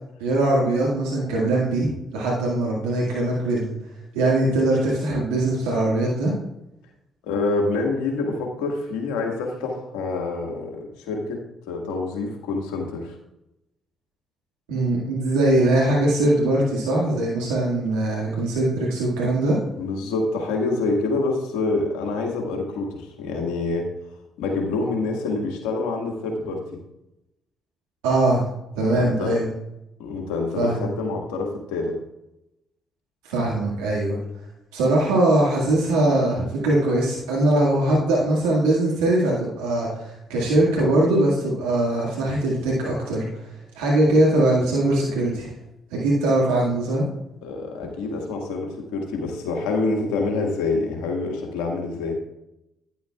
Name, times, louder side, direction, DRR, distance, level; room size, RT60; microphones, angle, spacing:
voice 1, 0.2-3.7 4.1-6.3 14.7-19.6 28.0-28.4 28.8-29.5 30.6-30.9 33.2-34.2 34.7-43.3 43.8-45.5 45.9-47.1, right 1 dB, 90° right, -4 dB, 1.9 m, -21 dB
voice 2, 7.2-11.4 11.7-13.2 18.1-18.3 19.7-23.9 24.4-26.6 28.9-29.4 30.0-32.0 47.4-52.2, left 3 dB, 85° left, 1 dB, 1.8 m, -26 dB
11.0 x 10.0 x 2.4 m, 0.88 s
hypercardioid pair, 50°, 0 cm